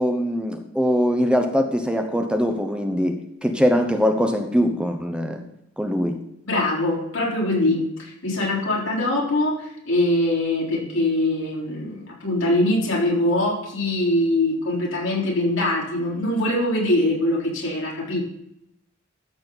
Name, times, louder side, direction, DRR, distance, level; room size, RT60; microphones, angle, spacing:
voice 1, 0.0-5.4 5.8-6.2, equal, 5° right, 5 dB, 0.9 m, -22 dB
voice 2, 6.5-18.2, left 1 dB, 70° left, -3 dB, 4.2 m, -23 dB
13.5 x 7.4 x 4.0 m, 0.80 s
head